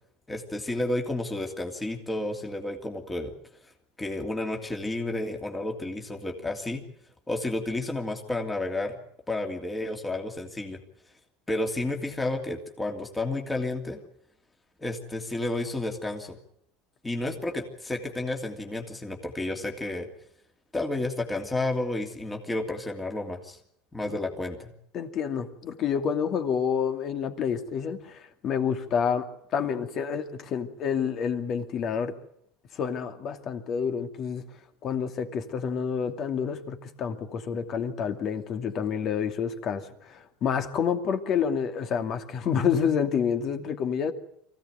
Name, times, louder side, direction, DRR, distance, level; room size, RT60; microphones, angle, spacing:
voice 1, 0.3-3.3 4.0-6.8 7.3-9.0 9.3-10.8 11.5-14.0 14.8-16.4 17.0-20.1 20.7-23.6 23.9-24.7, left 2 dB, 10° left, 3 dB, 2.9 m, -31 dB
voice 2, 24.9-29.2 29.5-32.1 32.7-34.4 34.8-44.1, left 7 dB, 40° left, 7 dB, 2.5 m, -28 dB
24.0 x 16.5 x 9.3 m, 0.71 s
supercardioid pair, 120°, 0 cm